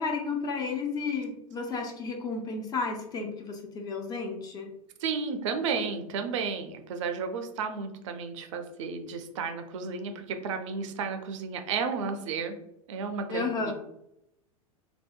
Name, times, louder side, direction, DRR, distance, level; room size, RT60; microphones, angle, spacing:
voice 1, 0.0-4.7 13.3-13.7, left 4 dB, 20° left, 3 dB, 0.4 m, -32 dB
voice 2, 5.0-12.6 12.9-13.7, right 5 dB, 55° right, 6 dB, 0.4 m, -33 dB
2.7 x 2.1 x 2.2 m, 0.80 s
figure-of-eight pair, 90°, 19 cm